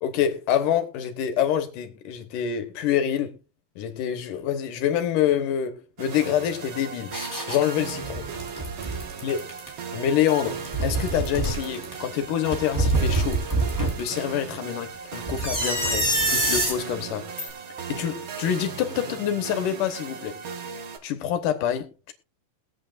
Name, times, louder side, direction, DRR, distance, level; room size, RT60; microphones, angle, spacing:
voice 1, 0.0-3.4 3.8-7.2 7.5-8.3 9.2-9.4 9.9-13.4 14.0-17.3 17.9-20.4 21.0-22.1, left 10 dB, 75° left, 2.8 m, -26 dB
sound 1, 6.0-21.0, right 6 dB, 55° right, 1.5 m, -37 dB
sound 2, 7.1-7.6 8.0-9.7 10.5-11.9 12.5-14.2 15.3-16.8 17.4-17.5, right 2 dB, 5° right, 3.9 m, -25 dB
21.5 x 8.4 x 2.6 m
omnidirectional pair, 3.8 m